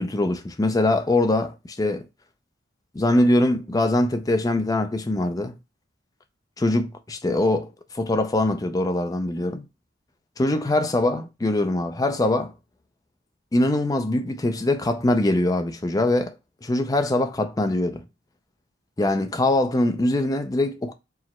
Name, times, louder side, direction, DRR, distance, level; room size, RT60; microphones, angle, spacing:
voice 1, 0.0-2.0 2.9-5.5 6.6-9.6 10.4-12.5 13.5-16.3 16.6-18.0 19.0-20.9, left 1 dB, 20° left, 0.4 m, -23 dB
4.6 x 2.1 x 4.2 m
head